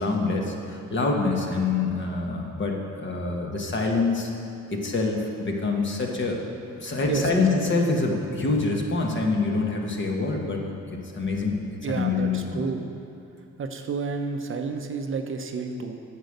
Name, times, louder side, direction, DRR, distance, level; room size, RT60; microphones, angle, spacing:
voice 1, 0.0-4.3 4.7-6.4 6.8-10.6 10.9-12.6, left 3 dB, 40° left, 0 dB, 1.5 m, -26 dB
voice 2, 11.8-12.9 13.6-16.0, right 4 dB, 45° right, 5 dB, 0.8 m, -30 dB
9.0 x 6.3 x 6.6 m, 2.6 s
cardioid pair, 90°, 30 cm